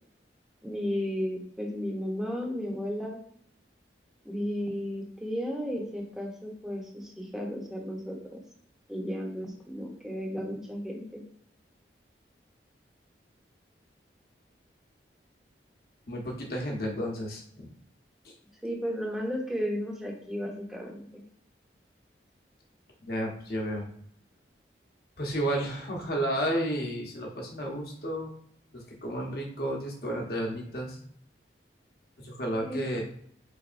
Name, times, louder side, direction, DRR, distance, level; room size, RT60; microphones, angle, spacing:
voice 1, 0.6-3.2 4.2-8.4 8.9-11.2 18.6-21.2 32.7-33.0, equal, 5° right, -1 dB, 0.7 m, -34 dB
voice 2, 16.1-17.7 18.2-18.3 23.0-23.9 25.2-28.3 28.7-31.0 32.2-33.0, right 1 dB, 55° left, 0 dB, 0.9 m, -32 dB
4.0 x 3.3 x 2.5 m, 0.66 s
head